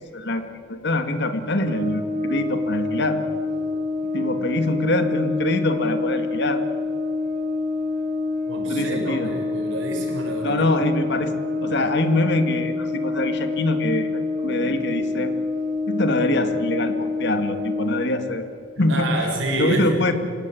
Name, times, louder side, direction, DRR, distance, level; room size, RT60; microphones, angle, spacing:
voice 1, 0.1-3.2 4.1-6.6 8.6-9.3 10.4-11.3 11.6-15.3 15.9-18.4 18.8-19.1 19.6-20.1, left 1 dB, 60° left, 8 dB, 2.0 m, -24 dB
Brass instrument, 1.6-18.0, left 3 dB, 45° right, 2.5 m, -27 dB
voice 2, 8.5-10.7 18.9-20.0, right 2 dB, 70° right, 2 dB, 6.1 m, -28 dB
27.0 x 17.5 x 9.2 m, 2.3 s
head